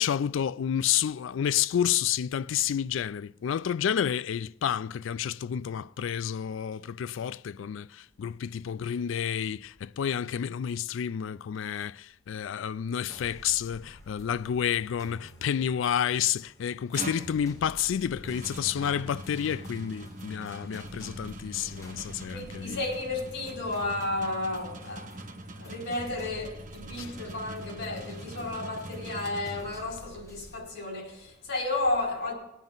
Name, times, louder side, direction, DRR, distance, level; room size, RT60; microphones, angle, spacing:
voice 1, 0.0-22.8 27.0-27.1, left 9 dB, 75° left, 0.3 m, -30 dB
sound 1, 13.1-30.5, equal, 15° left, 2.8 m, -51 dB
sound 2, 16.7-30.1, right 1 dB, 40° right, 1.0 m, -43 dB
voice 2, 22.3-25.3 25.6-32.3, left 2 dB, 60° left, 5.0 m, -33 dB
19.5 x 9.1 x 3.9 m
head